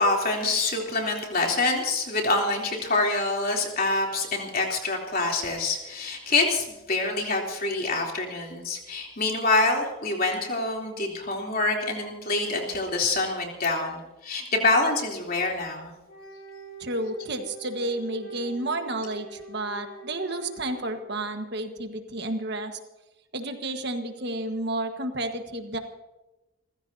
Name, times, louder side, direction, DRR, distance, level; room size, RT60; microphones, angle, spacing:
voice 1, 0.0-15.9, left 3 dB, 45° left, 0 dB, 3.3 m, -26 dB
Wind instrument woodwind instrument, 16.0-21.2, right 2 dB, 80° left, 4.9 m, -45 dB
voice 2, 16.8-22.8 23.3-25.8, right 1 dB, 55° right, 6 dB, 1.5 m, -31 dB
29.5 x 15.5 x 2.8 m, 1.0 s
head